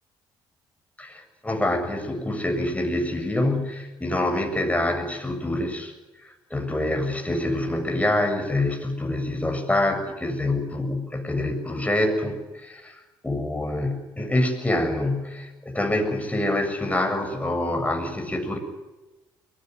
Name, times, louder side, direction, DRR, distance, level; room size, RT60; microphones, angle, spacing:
voice 1, 1.0-5.9 6.2-18.6, left 1 dB, 15° left, 5 dB, 7.6 m, -26 dB
23.0 x 21.0 x 9.6 m, 1.1 s
hypercardioid pair, 55°, 11 cm